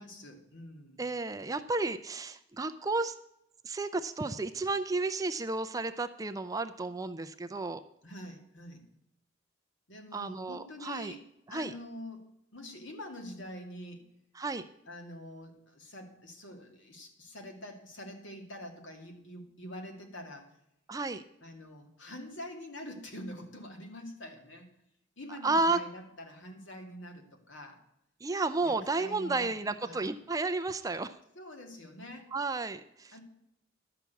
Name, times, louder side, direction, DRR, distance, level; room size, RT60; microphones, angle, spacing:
voice 1, 0.0-1.0 8.0-8.8 9.9-12.2 12.5-14.0 14.9-20.6 21.4-24.7 25.2-27.8 28.6-29.5 29.8-30.1 31.4-32.3 33.1-33.2, left 1 dB, 70° left, 4 dB, 2.1 m, -45 dB
voice 2, 1.0-3.1 3.6-7.8 10.1-11.1 11.5-11.7 14.4-14.6 20.9-21.2 25.4-25.8 28.2-31.1 32.3-33.1, right 3 dB, 15° right, 10 dB, 0.4 m, -32 dB
11.5 x 5.9 x 8.2 m, 0.79 s
head